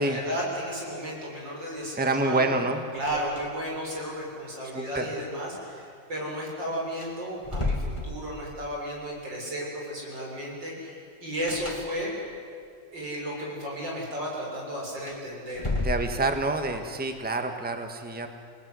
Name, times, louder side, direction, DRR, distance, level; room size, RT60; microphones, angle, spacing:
voice 1, 0.0-2.6 2.9-12.1 12.9-15.9, equal, 90° right, -3 dB, 7.7 m, -34 dB
voice 2, 1.9-2.8 4.7-5.1 15.8-18.3, right 2 dB, 5° right, 5 dB, 1.6 m, -27 dB
sound 1, 2.9-3.8 4.1-4.2 6.4-6.5 6.9-8.6 11.4-12.4 14.9-16.6, left 2 dB, 15° left, 2.2 m, -33 dB
28.5 x 20.0 x 9.8 m, 2.4 s
omnidirectional pair, 1.9 m